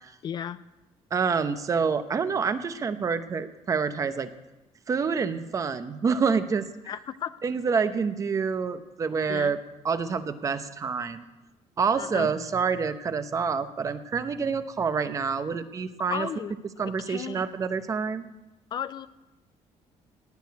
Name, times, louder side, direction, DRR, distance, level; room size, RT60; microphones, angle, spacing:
voice 1, 0.2-0.6 6.9-7.4 9.3-9.5 12.0-12.3 16.1-16.5 17.1-17.4 18.7-19.1, left 9 dB, 40° left, 14 dB, 0.4 m, -34 dB
voice 2, 1.1-4.3 4.9-6.7 7.4-9.6 9.8-11.2 11.8-16.3 16.8-18.3, right 5 dB, 30° right, 11 dB, 0.7 m, -27 dB
17.5 x 6.5 x 9.3 m, 1.0 s
cardioid pair, 165°, 12 cm